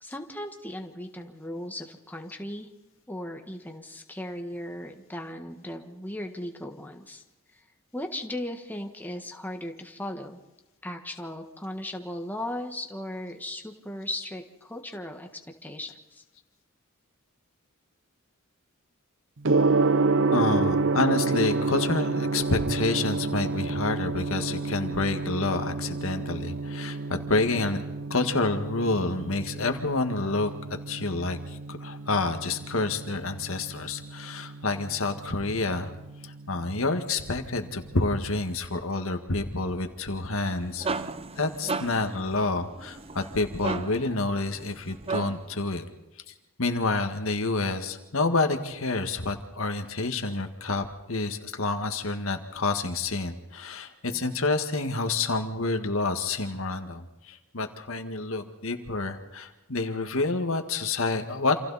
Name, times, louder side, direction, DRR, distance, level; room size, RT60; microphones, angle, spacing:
voice 1, 0.0-2.7 3.1-7.2 7.5-7.6 7.9-10.4 10.8-15.3 15.6-16.2, left 1 dB, 10° left, 4 dB, 1.5 m, -37 dB
Gong, 19.4-38.5, right 3 dB, 60° right, 0.7 m, -30 dB
voice 2, 20.3-27.8 28.1-30.5 30.9-35.9 36.2-40.9 41.4-45.8 46.6-61.6, left 3 dB, 75° left, 6 dB, 1.9 m, -28 dB
sound 1, 40.4-45.6, right 4 dB, 25° right, 0.7 m, -35 dB
28.0 x 27.0 x 4.2 m, 1.0 s
head